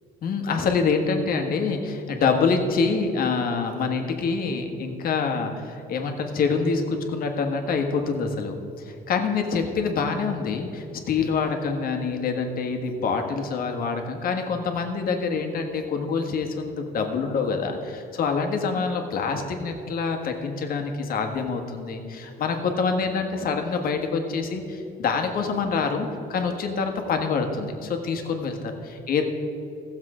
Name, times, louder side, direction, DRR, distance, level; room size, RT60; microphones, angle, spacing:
voice 1, 0.2-29.2, left 5 dB, 60° left, 4 dB, 1.5 m, -26 dB
15.5 x 7.3 x 5.0 m, 2.8 s
cardioid pair, 110°, 17 cm